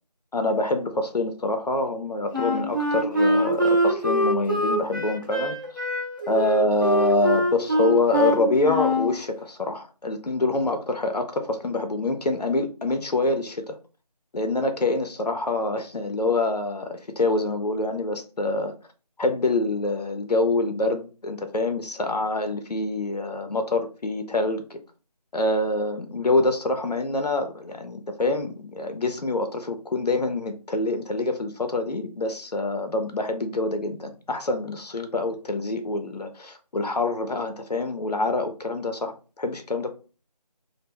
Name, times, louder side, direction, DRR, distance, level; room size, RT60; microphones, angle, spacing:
voice 1, 0.3-5.6 6.3-13.8 14.3-18.8 19.2-24.8 25.3-39.9, left 2 dB, 75° left, 7 dB, 0.5 m, -26 dB
Wind instrument woodwind instrument, 2.3-9.1, equal, 30° right, 0.5 m, -24 dB
2.2 x 2.0 x 3.3 m, 0.35 s
figure-of-eight pair, 165°, 21 cm